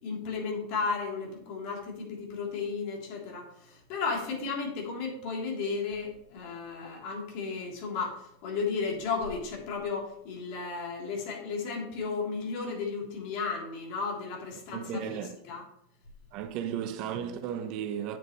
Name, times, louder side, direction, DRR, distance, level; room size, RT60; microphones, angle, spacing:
voice 1, 0.0-15.6, left 4 dB, 60° left, 3.1 m, -34 dB
voice 2, 14.7-15.3 16.3-18.2, right 9 dB, 55° right, 0.9 m, -34 dB
9.1 x 8.1 x 3.1 m
hypercardioid pair, 115°, 0 cm